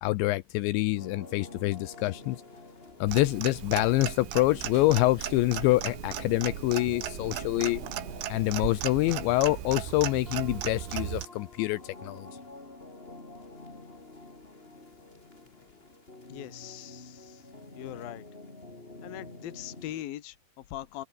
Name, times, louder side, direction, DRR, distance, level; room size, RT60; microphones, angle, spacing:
voice 1, 0.0-2.4 3.0-7.8 8.3-12.3, left 19 dB, 85° left, 2.7 m, -26 dB
sound 1, 1.0-20.0, left 2 dB, 15° left, 3.0 m, -48 dB
Clock, 3.1-11.3, right 12 dB, 75° right, 4.3 m, -36 dB
sound 2, 6.4-10.4, right 2 dB, 25° right, 8.2 m, -57 dB
voice 2, 16.3-17.4 17.8-18.2 19.0-21.0, left 13 dB, 60° left, 2.7 m, -41 dB
open air
omnidirectional pair, 5.8 m